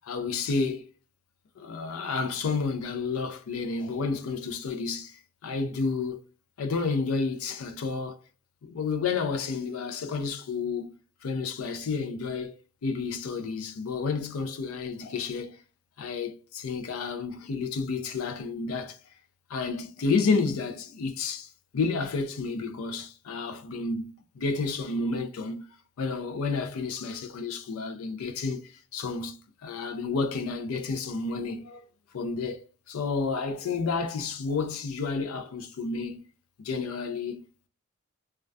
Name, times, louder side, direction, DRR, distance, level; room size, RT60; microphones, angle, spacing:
voice 1, 0.0-0.9 1.6-6.2 6.6-8.2 8.6-11.0 11.2-12.6 12.8-15.6 16.0-19.0 19.5-25.7 26.0-31.9 32.1-36.3 36.6-37.4, left 4 dB, 90° left, 0.4 m, -31 dB
2.3 x 2.1 x 2.5 m
head